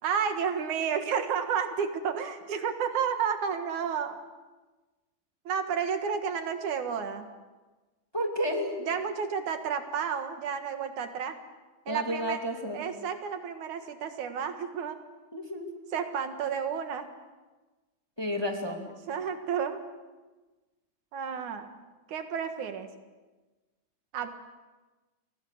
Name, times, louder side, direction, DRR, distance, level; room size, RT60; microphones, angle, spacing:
voice 1, 0.0-4.2 5.5-7.3 8.8-11.4 11.9-12.4 12.7-15.0 15.9-17.1 19.1-19.8 21.1-21.8 22.1-22.9 24.1-24.3, right 7 dB, 80° right, 7 dB, 3.1 m, -31 dB
voice 2, 8.1-8.8 11.9-12.8 15.3-15.7 18.2-18.9, equal, 10° left, 2 dB, 2.3 m, -31 dB
29.5 x 23.5 x 6.7 m, 1.2 s
omnidirectional pair, 3.4 m